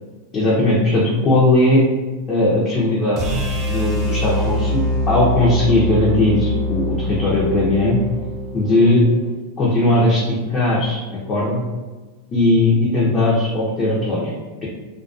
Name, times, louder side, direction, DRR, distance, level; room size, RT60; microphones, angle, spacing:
voice 1, 0.3-1.8 2.3-3.4 3.7-4.8 5.1-8.0 8.5-9.0 9.6-10.2 10.5-11.0 11.3-11.6 12.3-14.3, left 2 dB, 25° left, -6 dB, 0.5 m, -18 dB
sound 1, 3.2-9.3, equal, 25° right, 0.7 m, -24 dB
2.3 x 2.2 x 2.4 m, 1.3 s
supercardioid pair, 140°, 0 cm